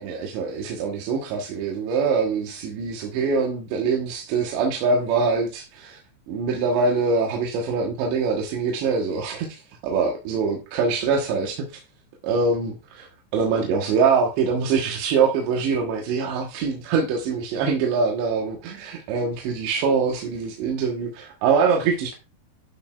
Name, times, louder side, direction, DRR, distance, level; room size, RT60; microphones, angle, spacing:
voice 1, 0.0-6.0 6.3-11.7 12.2-13.1 13.3-22.2, right 5 dB, 85° right, 3.5 m, -24 dB
12.5 x 6.4 x 2.3 m
omnidirectional pair, 4.9 m